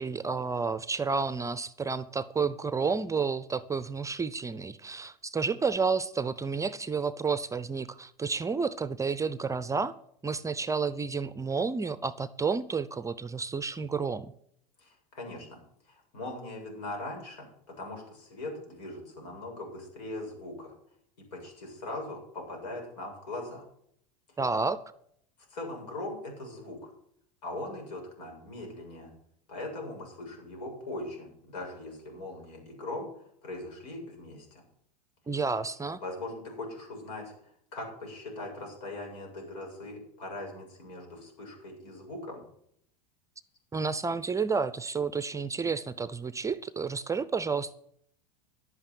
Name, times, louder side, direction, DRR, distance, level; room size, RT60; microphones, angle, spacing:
voice 1, 0.0-9.9 10.2-14.3 24.4-24.8 35.3-36.0 43.7-47.8, right 5 dB, 15° right, 16 dB, 0.6 m, -30 dB
voice 2, 14.8-15.6 15.9-17.5 17.8-20.7 21.2-23.6 25.5-26.9 27.4-29.1 29.5-34.6 36.0-42.4, left 2 dB, 80° left, 1 dB, 7.5 m, -40 dB
11.0 x 8.8 x 9.5 m, 0.69 s
hypercardioid pair, 100°, 21 cm